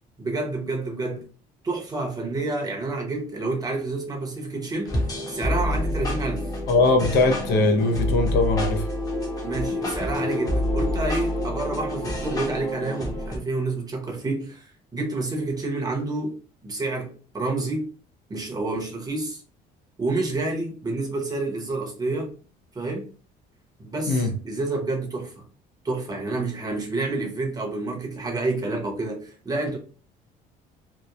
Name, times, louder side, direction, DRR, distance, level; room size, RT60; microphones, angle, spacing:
voice 1, 0.2-1.2 1.6-4.9 5.3-6.5 9.4-16.3 16.6-17.9 18.3-19.4 20.0-22.3 22.7-23.1 23.8-25.5 25.8-29.8, right 2 dB, 20° right, 0.8 m, -29 dB
sound 1, 4.9-13.4, left 1 dB, 20° left, 0.7 m, -27 dB
voice 2, 6.7-8.8 24.1-24.3, left 3 dB, 80° left, 0.6 m, -20 dB
2.9 x 2.1 x 2.3 m
cardioid pair, 110°, 17 cm